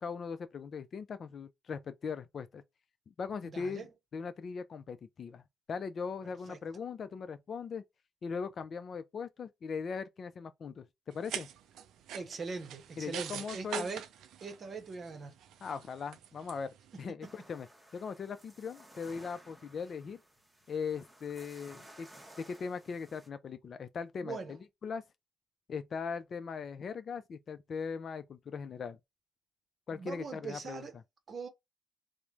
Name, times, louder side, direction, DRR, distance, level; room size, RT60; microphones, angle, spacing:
voice 1, 0.0-2.6 3.1-3.9 4.1-5.4 5.7-7.8 8.2-11.5 13.0-13.9 15.6-17.7 17.9-20.2 20.7-22.1 22.4-24.6 24.8-25.0 25.7-29.0 29.9-30.9, left 5 dB, 50° left, 0.4 m, -39 dB
voice 2, 3.4-3.9 6.5-6.6 12.1-14.0 14.4-15.4 17.2-17.3 24.2-24.5 29.9-31.0 31.3-31.5, right 4 dB, 45° right, 0.7 m, -41 dB
sound 1, 11.1-17.1, right 9 dB, 80° right, 0.3 m, -44 dB
sound 2, 17.2-23.3, right 1 dB, 10° right, 0.8 m, -56 dB
3.1 x 2.0 x 2.4 m
cardioid pair, 90°, 0 cm